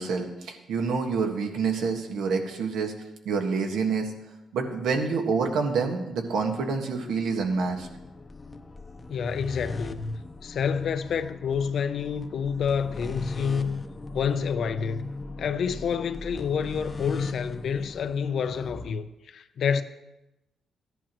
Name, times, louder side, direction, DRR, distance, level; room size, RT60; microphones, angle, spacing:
voice 1, 0.0-2.9 3.2-4.1 4.5-7.9, right 5 dB, 90° right, 1.5 m, -27 dB
sound 1, 6.2-18.9, left 2 dB, 25° left, 0.7 m, -40 dB
voice 2, 9.1-13.8 14.1-15.1 15.4-19.8, left 6 dB, 65° left, 0.6 m, -28 dB
15.0 x 11.0 x 3.1 m
cardioid pair, 105°, 0 cm